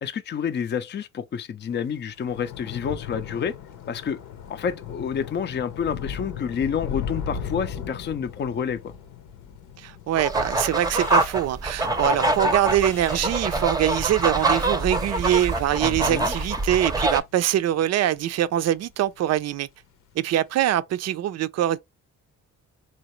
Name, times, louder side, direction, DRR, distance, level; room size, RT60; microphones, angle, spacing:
voice 1, 0.0-3.5 3.9-4.2 4.5-8.9 15.8-16.3, left 7 dB, 35° left, 0.5 m, -29 dB
Thunder / Rain, 1.7-18.3 18.6-19.1 19.3-19.5, left 7 dB, 80° left, 0.8 m, -38 dB
voice 2, 9.8-19.7 20.2-21.8, right 12 dB, 60° right, 0.5 m, -23 dB
sound 1, 10.2-17.2, right 2 dB, 10° right, 0.6 m, -25 dB
sound 2, 10.7-11.9 12.2-13.7 14.1-15.8 16.1-17.0, left 1 dB, 10° left, 0.9 m, -45 dB
3.9 x 2.8 x 3.0 m
cardioid pair, 90°, 30 cm